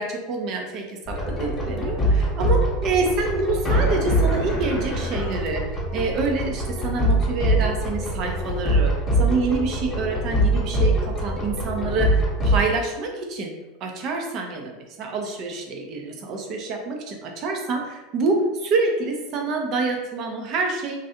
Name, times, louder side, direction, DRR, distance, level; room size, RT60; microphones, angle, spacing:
voice 1, 0.0-5.6 5.9-8.9 9.2-13.5 13.8-21.0, right 3 dB, 45° right, 2 dB, 0.6 m, -27 dB
sound 1, 1.1-12.6, right 1 dB, 15° left, 1.0 m, -23 dB
3.1 x 2.5 x 2.8 m, 1.1 s
figure-of-eight pair, 80°, 0 cm